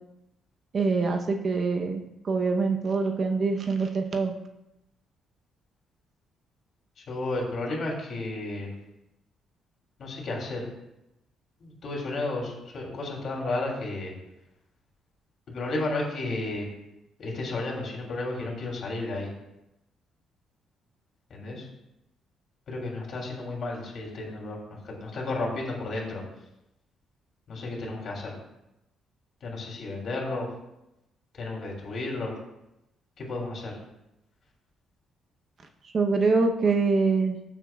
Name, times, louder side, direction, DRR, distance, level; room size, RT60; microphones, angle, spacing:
voice 1, 0.7-4.3 35.8-37.4, right 4 dB, 35° right, 4 dB, 0.8 m, -25 dB
voice 2, 7.1-8.7 10.0-10.7 11.6-14.1 15.5-16.7 17.2-19.3 21.3-21.7 22.7-26.2 27.5-28.3 29.4-30.5 31.3-32.3 33.2-33.8, left 2 dB, 50° left, -1 dB, 3.0 m, -32 dB
14.5 x 7.2 x 2.4 m, 0.89 s
cardioid pair, 145°, 0 cm